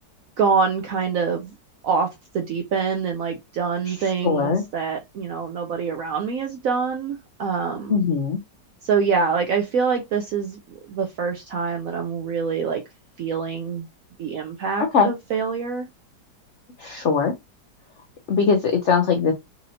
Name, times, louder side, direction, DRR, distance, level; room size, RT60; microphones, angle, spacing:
voice 1, 0.4-1.5 1.8-2.1 2.3-8.0 8.8-12.8 13.2-13.9 14.2-15.9, right 5 dB, 75° right, 0.8 m, -25 dB
voice 2, 4.2-4.6 7.9-8.4 14.9-15.1 16.8-17.3 18.3-19.3, left 5 dB, 75° left, 0.6 m, -20 dB
4.2 x 2.7 x 2.6 m
omnidirectional pair, 1.9 m